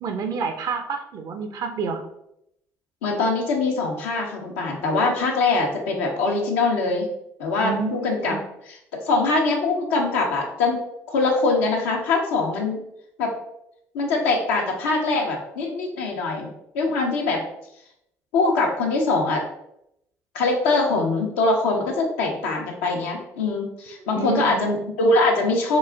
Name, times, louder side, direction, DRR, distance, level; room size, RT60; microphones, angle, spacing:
voice 1, 0.0-2.1 7.6-8.4 24.1-24.6, right 5 dB, 60° right, 6 dB, 0.6 m, -29 dB
voice 2, 3.0-7.0 7.4-8.4 8.7-10.8 11.1-12.8 13.2-13.3 13.9-16.5 16.7-17.4 18.3-19.4 20.3-25.8, left 3 dB, 85° left, 0 dB, 0.8 m, -23 dB
4.1 x 2.5 x 3.4 m, 0.79 s
hypercardioid pair, 55°, 7 cm